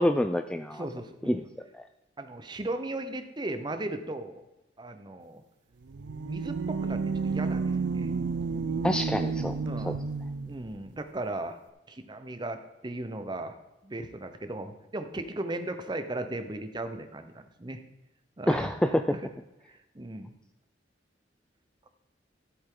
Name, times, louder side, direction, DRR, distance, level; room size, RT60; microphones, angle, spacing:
voice 1, 0.0-0.8 1.3-1.4 1.8-1.9 8.8-9.6 9.8-10.0 18.5-19.0, left 1 dB, 5° left, 8 dB, 0.3 m, -27 dB
voice 2, 0.7-1.4 2.2-4.4 4.8-5.4 6.3-8.1 9.6-10.0 10.4-11.6 11.9-13.6 13.8-17.8 18.4-18.7 19.1-19.3 19.7-20.3, right 2 dB, 25° right, 8 dB, 0.8 m, -37 dB
sound 1, 5.8-10.6, right 4 dB, 75° right, 0.5 m, -31 dB
13.0 x 8.0 x 3.8 m, 0.95 s
head